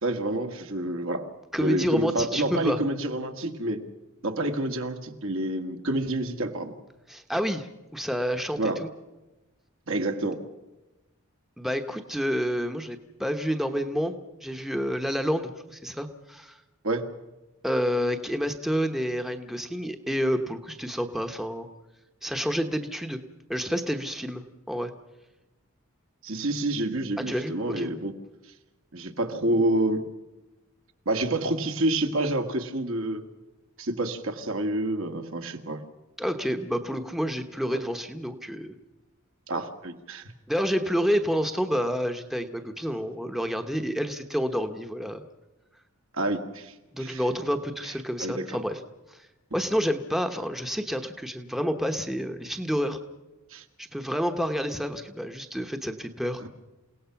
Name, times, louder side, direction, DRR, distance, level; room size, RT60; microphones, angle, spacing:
voice 1, 0.0-1.3 1.6-3.8 4.2-6.7 8.6-8.8 9.9-10.4 16.8-17.0 26.2-28.1 28.9-30.0 31.1-33.2 33.8-35.8 37.7-37.8 39.5-40.2 46.1-47.2 48.2-48.4 53.5-53.6 56.4-56.5, right 1 dB, 65° right, 5 dB, 1.9 m, -28 dB
voice 2, 1.5-2.8 7.1-8.9 11.6-14.2 14.4-16.6 17.6-21.7 22.2-23.2 23.5-24.9 27.2-27.9 36.2-38.8 40.5-45.2 46.9-48.8 49.1-49.3 49.5-53.0 53.8-56.4, equal, ahead, 6 dB, 1.0 m, -29 dB
28.5 x 17.5 x 5.8 m, 1.0 s
head